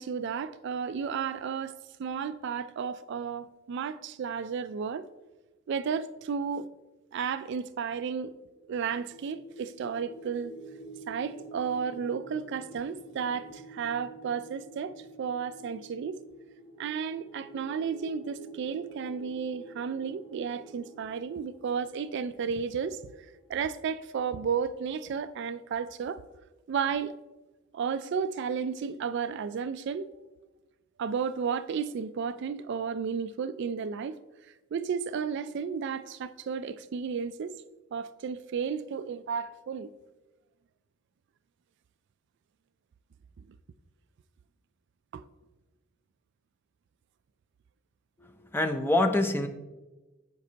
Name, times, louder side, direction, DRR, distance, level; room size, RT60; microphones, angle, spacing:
voice 1, 0.0-5.1 5.7-6.7 7.1-8.3 8.7-10.5 11.1-16.2 16.8-23.0 23.5-26.2 26.7-27.1 27.7-30.1 31.0-34.2 34.7-37.6 37.9-39.9 45.1-45.2, right 6 dB, 55° right, 0.3 m, -33 dB
sound 1, 8.4-23.5, right 3 dB, 85° left, 2.0 m, -48 dB
voice 2, 48.2-49.5, left 2 dB, 10° left, 0.5 m, -26 dB
14.0 x 5.3 x 2.8 m
head